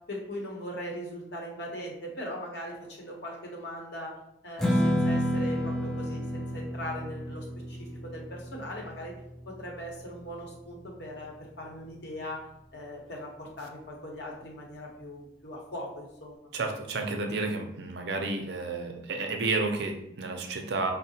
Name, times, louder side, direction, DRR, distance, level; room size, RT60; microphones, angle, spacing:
voice 1, 0.1-4.1 4.4-9.1 9.5-12.4 12.7-16.5, equal, 65° left, -1 dB, 0.9 m, -40 dB
Strum, 4.6-10.9, equal, ahead, 0.3 m, -31 dB
voice 2, 16.5-20.9, right 3 dB, 65° right, 3 dB, 0.5 m, -31 dB
4.7 x 2.0 x 2.7 m, 0.79 s
head